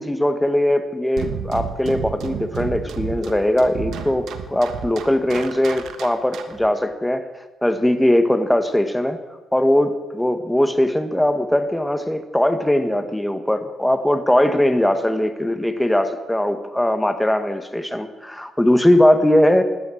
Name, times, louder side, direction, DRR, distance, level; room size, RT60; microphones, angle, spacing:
voice 1, 0.0-7.2 7.6-9.2 9.5-19.6, left 1 dB, 5° left, 9 dB, 1.6 m, -20 dB
sound 1, 1.2-6.7, right 7 dB, 75° right, 1.4 m, -31 dB
17.0 x 11.0 x 6.6 m, 1.1 s
cardioid pair, 90°, 0 cm